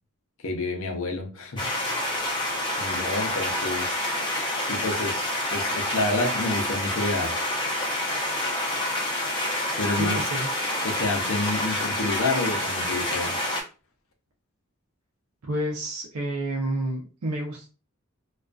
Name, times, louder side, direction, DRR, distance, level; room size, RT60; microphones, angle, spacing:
voice 1, 0.4-1.7 2.8-4.0 4.6-7.3 9.8-10.2 10.8-13.4, left 2 dB, 65° left, 0.6 m, -29 dB
sound 1, 1.6-13.6, left 1 dB, 20° left, 0.6 m, -28 dB
voice 2, 10.0-10.5 15.4-17.7, right 1 dB, 80° right, 0.6 m, -29 dB
2.5 x 2.3 x 2.2 m
head